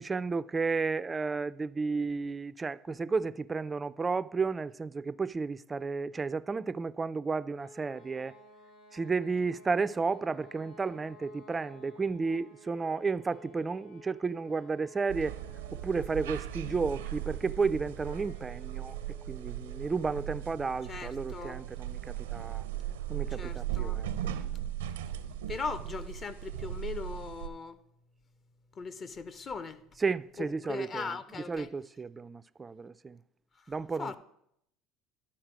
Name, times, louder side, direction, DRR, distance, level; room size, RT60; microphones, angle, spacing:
voice 1, 0.0-8.3 8.9-15.4 15.8-18.9 19.3-22.6 23.1-24.3 30.0-31.2 31.5-33.2 33.7-34.2, right 4 dB, 20° right, 0.3 m, -32 dB
sound 1, 7.5-20.3, equal, 70° left, 3.9 m, -55 dB
sound 2, 15.1-27.5, right 12 dB, 90° right, 0.5 m, -38 dB
voice 2, 20.9-21.6 23.3-24.0 25.5-27.8 28.8-29.8 30.4-31.7 34.0-34.2, left 4 dB, 35° left, 0.7 m, -39 dB
12.0 x 4.4 x 6.1 m
hypercardioid pair, 85°, 0 cm